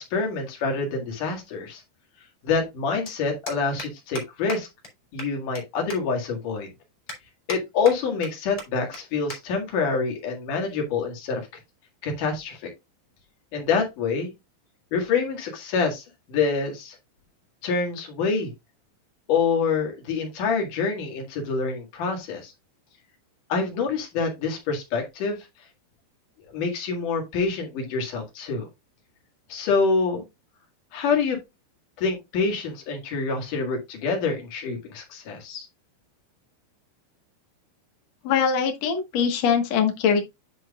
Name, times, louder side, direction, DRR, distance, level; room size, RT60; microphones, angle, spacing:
voice 1, 0.0-1.8 2.4-4.7 5.1-6.7 7.5-11.4 12.0-12.7 13.5-14.3 14.9-17.0 17.6-18.5 19.3-22.5 23.5-25.5 26.5-28.7 29.5-30.2 30.9-31.4 32.0-35.7, left 4 dB, 55° left, 2.8 m, -26 dB
sound 1, 3.0-3.1 3.5-3.9 4.1-4.2 4.5-4.6 4.8-4.9 5.2-5.6 5.9-6.0 6.5-6.6 7.1-7.6 7.8-8.3 8.6-8.7 8.9-9.0 9.3-9.4 9.7-9.9 10.7-11.0, left 1 dB, 10° left, 2.5 m, -36 dB
voice 2, 38.2-40.2, left 7 dB, 85° left, 1.5 m, -22 dB
10.0 x 6.1 x 2.4 m
omnidirectional pair, 5.5 m